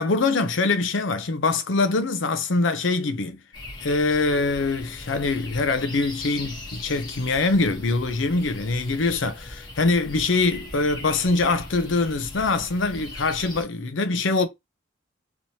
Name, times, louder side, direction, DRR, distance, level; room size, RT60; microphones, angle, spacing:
voice 1, 0.0-3.4 3.8-14.5, left 3 dB, 75° left, 0.6 m, -23 dB
sound 1, 3.5-13.6, left 1 dB, 25° left, 0.9 m, -40 dB
3.2 x 3.0 x 2.7 m
head